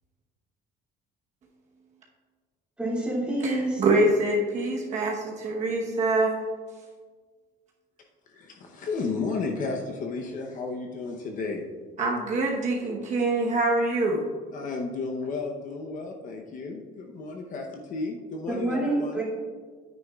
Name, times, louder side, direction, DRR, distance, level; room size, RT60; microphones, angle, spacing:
voice 1, 2.8-3.8 18.5-19.2, right 1 dB, 5° right, -7 dB, 2.5 m, -27 dB
voice 2, 3.4-6.4 12.0-14.2, right 2 dB, 40° right, -1 dB, 1.1 m, -25 dB
voice 3, 8.3-11.6 14.5-19.2, left 3 dB, 45° left, 2 dB, 0.8 m, -33 dB
9.6 x 9.3 x 2.4 m, 1.5 s
cardioid pair, 155°, 19 cm